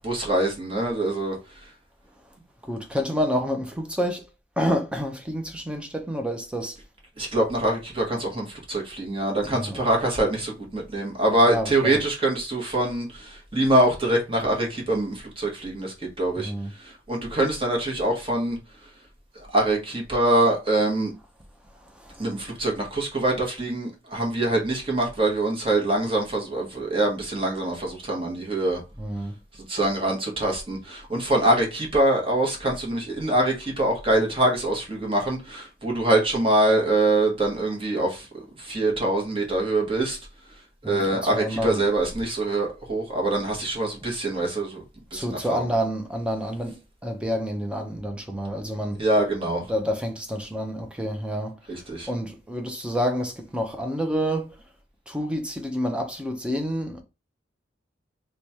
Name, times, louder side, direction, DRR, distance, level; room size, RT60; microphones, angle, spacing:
voice 1, 0.0-1.4 7.2-16.5 16.8-18.6 19.3-21.1 22.2-28.8 29.7-40.2 40.8-44.8 45.1-45.7 49.0-49.7 51.7-52.1, right 1 dB, 30° right, 1.1 m, -24 dB
voice 2, 2.6-4.2 4.6-6.8 9.5-9.8 11.5-12.0 16.4-16.7 21.9-22.3 29.0-29.3 40.8-41.8 45.1-49.0 49.7-51.5 52.1-54.6 55.1-57.0, equal, 5° right, 0.6 m, -28 dB
3.1 x 2.3 x 4.1 m
head